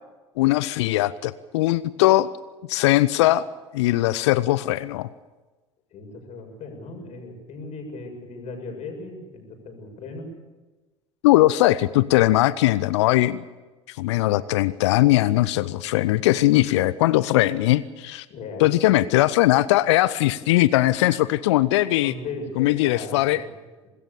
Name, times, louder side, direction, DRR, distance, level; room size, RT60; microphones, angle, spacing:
voice 1, 0.4-2.3 2.7-3.5 3.7-5.1 11.2-13.4 13.9-18.3 18.6-22.1 22.6-23.4, left 16 dB, 65° left, 18 dB, 0.7 m, -20 dB
voice 2, 5.9-10.3 18.3-19.1 21.9-23.5, left 3 dB, 45° left, 4 dB, 7.1 m, -37 dB
25.0 x 21.0 x 7.0 m, 1.2 s
figure-of-eight pair, 70°, 16 cm